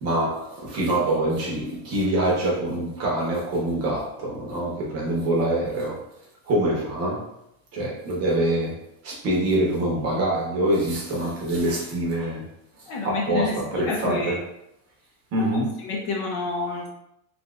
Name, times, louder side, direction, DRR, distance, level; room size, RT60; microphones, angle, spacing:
voice 1, 0.0-6.0 6.5-7.3 7.7-12.5 13.0-14.5 15.3-15.8, right 1 dB, 35° right, 0.8 m, -25 dB
voice 2, 12.9-14.4 15.3-15.5 15.8-16.9, left 3 dB, 45° left, 0.5 m, -28 dB
2.8 x 2.5 x 3.0 m
cardioid pair, 180°, 44 cm